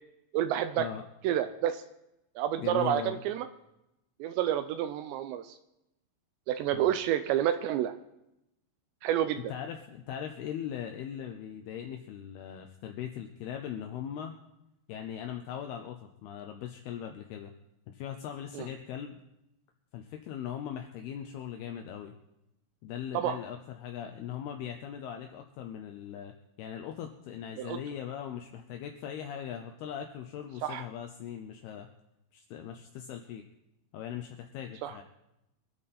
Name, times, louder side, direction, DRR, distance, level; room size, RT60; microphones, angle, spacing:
voice 1, 0.3-0.9 1.2-1.8 2.4-3.5 4.2-5.6 6.5-7.9 9.0-9.4 18.5-18.7 23.1-23.4 27.6-27.8 30.6-30.8 34.8-35.0, right 11 dB, 85° right, 10 dB, 2.5 m, -29 dB
voice 2, 2.6-3.2 6.7-6.9 9.4-14.4 14.9-17.5 17.9-19.2 19.9-22.1 22.8-26.3 26.6-31.9 32.3-33.4 33.9-35.0, left 9 dB, 90° left, 5 dB, 2.2 m, -40 dB
24.5 x 8.8 x 4.3 m, 0.87 s
omnidirectional pair, 5.6 m